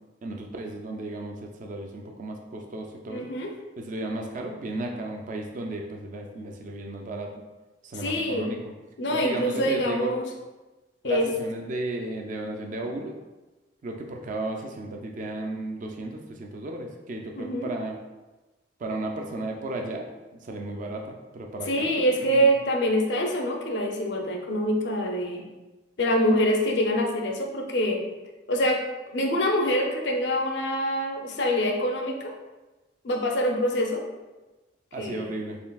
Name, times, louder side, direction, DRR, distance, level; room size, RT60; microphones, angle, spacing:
voice 1, 0.2-3.3 3.8-7.3 7.8-8.7 9.1-10.2 11.0-13.2 13.8-18.0 18.8-20.1 20.4-22.5 34.9-35.6, right 2 dB, 45° right, 2 dB, 0.4 m, -34 dB
voice 2, 3.1-3.5 7.9-8.5 9.0-10.2 11.0-11.3 17.3-17.7 21.7-25.5 26.0-28.0 28.5-28.8 29.1-32.3 33.0-34.0 35.0-35.3, equal, 65° left, 2 dB, 0.6 m, -25 dB
4.4 x 3.2 x 2.3 m, 1.1 s
head